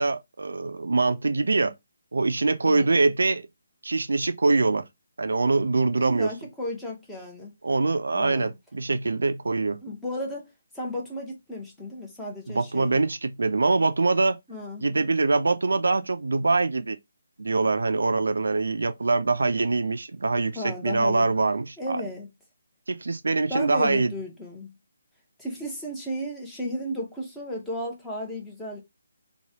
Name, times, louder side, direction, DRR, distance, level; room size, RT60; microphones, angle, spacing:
voice 1, 0.0-1.7 2.1-3.4 3.8-4.9 5.2-6.3 7.6-9.8 12.5-14.4 14.8-17.0 17.4-22.0 22.9-24.1, right 3 dB, 75° right, 0.4 m, -24 dB
voice 2, 2.7-3.1 6.0-7.5 8.1-8.5 9.8-10.5 10.7-13.0 14.5-14.9 20.5-21.3 21.8-22.3 23.5-24.7 25.4-28.8, equal, 5° left, 0.9 m, -34 dB
3.0 x 2.3 x 2.7 m
figure-of-eight pair, 155°, 0 cm